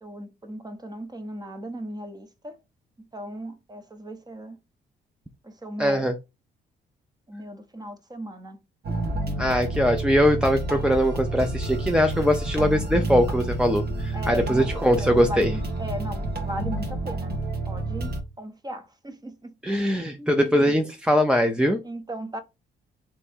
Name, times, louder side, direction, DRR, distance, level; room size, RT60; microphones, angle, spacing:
voice 1, 0.0-2.6 3.0-4.6 5.4-6.1 7.3-8.6 8.9-9.1 14.1-17.4 17.7-19.5 20.2-20.7 21.8-22.4, equal, 20° right, 0.9 m, -37 dB
voice 2, 5.8-6.1 9.4-15.5 19.6-21.8, equal, 5° right, 0.5 m, -21 dB
sound 1, 8.8-18.2, right 2 dB, 55° right, 1.3 m, -29 dB
3.4 x 3.1 x 4.4 m
cardioid pair, 90°, 20 cm